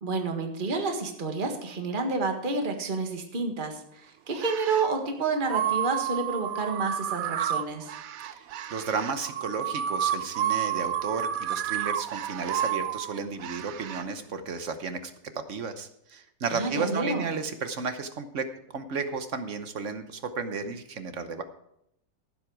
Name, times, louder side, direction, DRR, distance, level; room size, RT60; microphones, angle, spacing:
voice 1, 0.0-7.9 16.5-17.3, right 3 dB, 30° right, 4 dB, 1.7 m, -29 dB
sound 1, 4.3-4.9 5.5-14.1, right 10 dB, 70° right, 0.9 m, -31 dB
voice 2, 8.2-18.5 18.7-21.4, right 4 dB, 50° right, 9 dB, 1.1 m, -33 dB
15.0 x 7.7 x 4.8 m, 0.78 s
omnidirectional pair, 2.0 m